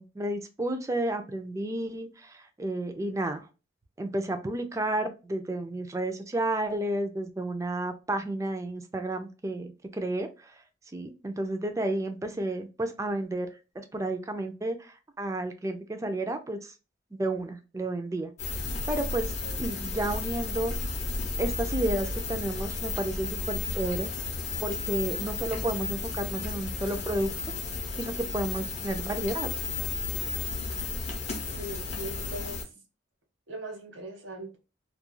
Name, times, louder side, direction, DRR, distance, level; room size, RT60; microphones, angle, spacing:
voice 1, 0.0-3.5 4.0-9.7 9.9-10.3 10.9-13.5 13.8-16.7 17.1-18.3 18.9-20.7 21.4-24.1 24.6-27.3 28.0-29.5, right 1 dB, 15° right, 0.3 m, -31 dB
sound 1, 18.4-32.6, left 3 dB, 35° left, 0.6 m, -33 dB
voice 2, 31.4-32.7 33.5-34.6, right 1 dB, 85° right, 0.9 m, -40 dB
2.3 x 2.2 x 2.9 m
head